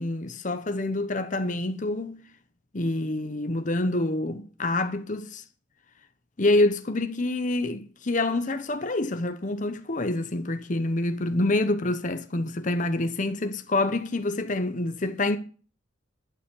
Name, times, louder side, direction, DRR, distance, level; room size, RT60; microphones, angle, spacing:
voice 1, 0.0-2.2 2.7-5.4 6.4-15.4, left 2 dB, 40° left, 0.9 m, -27 dB
11.5 x 7.1 x 7.0 m
head